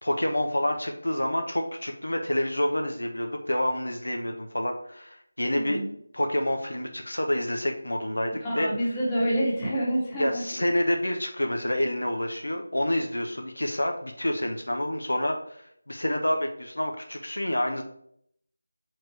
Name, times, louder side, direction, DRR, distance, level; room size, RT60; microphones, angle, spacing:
voice 1, 0.0-5.8 6.1-8.7 10.2-17.8, left 1 dB, 75° left, 4 dB, 0.9 m, -28 dB
voice 2, 5.5-5.9 8.4-10.4, equal, 15° left, -7 dB, 1.6 m, -27 dB
4.7 x 4.5 x 4.7 m, 0.67 s
figure-of-eight pair, 165°, 0 cm